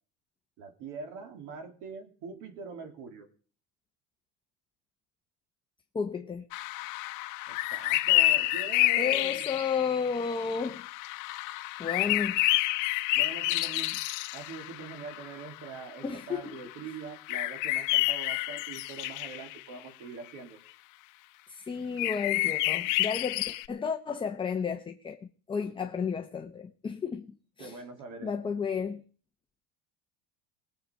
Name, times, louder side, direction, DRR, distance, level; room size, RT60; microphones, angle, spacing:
voice 1, 0.6-3.3 7.5-9.5 13.1-14.0 14.3-20.6 27.6-28.3, right 4 dB, 60° right, 3.1 m, -43 dB
voice 2, 5.9-6.4 9.0-10.9 11.8-12.4 16.0-16.6 21.5-25.2 25.5-27.8 28.2-29.0, left 6 dB, 15° left, 0.8 m, -32 dB
sound 1, 6.5-15.5 15.8-15.9 16.2-16.4 17.3-19.6 22.0-23.7, left 18 dB, 60° left, 0.8 m, -29 dB
20.0 x 7.8 x 5.2 m
cardioid pair, 135°, 35 cm